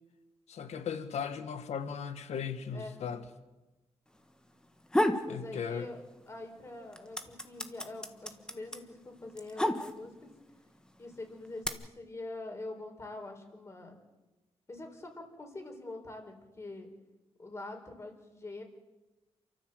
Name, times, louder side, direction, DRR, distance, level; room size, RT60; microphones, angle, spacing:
voice 1, 0.5-3.2 5.3-5.9, left 7 dB, 85° left, 1.7 m, -37 dB
sound 1, 4.6-5.3 5.7-6.4 6.7-10.3 11.0-11.7, left 1 dB, 5° left, 1.4 m, -31 dB
voice 2, 5.3-6.0 6.3-10.3 11.0-14.0 14.7-16.9 17.4-18.6, left 2 dB, 25° left, 4.6 m, -44 dB
28.5 x 13.5 x 8.0 m
wide cardioid pair, 145°, 11 cm